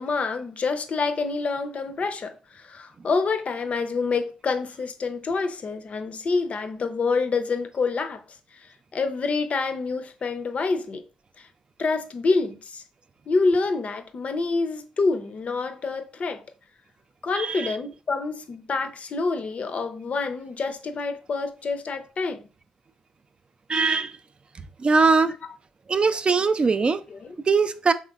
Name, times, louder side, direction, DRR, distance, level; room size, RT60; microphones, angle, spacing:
voice 1, 0.0-8.2 8.9-11.0 11.4-11.5 11.8-12.8 13.3-16.4 17.2-22.5 25.2-25.3 27.1-27.4, left 4 dB, 45° left, 0.5 m, -27 dB
voice 2, 17.4-17.7 23.7-24.1 24.8-25.3 25.9-27.0 27.5-27.9, right 4 dB, 35° right, 0.3 m, -21 dB
4.2 x 3.1 x 2.4 m
hypercardioid pair, 40°, 3 cm